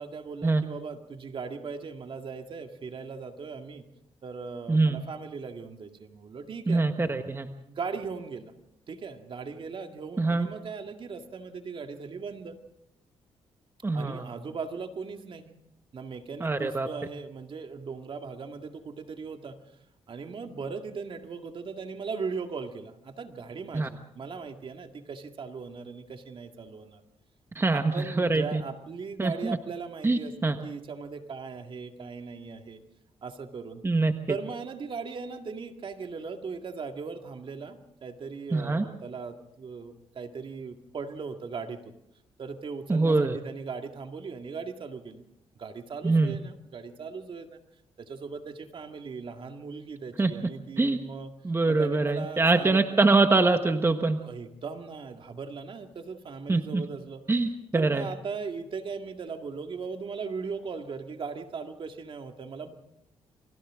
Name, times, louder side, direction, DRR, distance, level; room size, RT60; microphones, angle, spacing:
voice 1, 0.0-3.8 4.2-6.8 7.7-8.5 8.9-12.6 13.9-15.5 15.9-19.6 20.1-27.0 27.7-32.8 33.2-33.8 34.3-41.8 42.4-45.2 45.6-47.6 48.0-51.3 51.7-53.0 54.2-57.2 57.7-62.7, right 5 dB, 55° right, 5 dB, 2.1 m, -38 dB
voice 2, 6.7-7.5 10.2-10.5 13.8-14.3 16.4-16.9 23.7-23.9 27.5-28.6 29.2-29.6 30.0-30.6 33.8-34.4 38.5-38.8 42.9-43.4 46.0-46.4 50.2-50.3 50.8-51.0 51.4-54.2 56.5-56.8 57.3-58.0, right 3 dB, 20° right, 7 dB, 1.3 m, -24 dB
29.0 x 24.0 x 3.7 m, 0.77 s
cardioid pair, 80°, 11 cm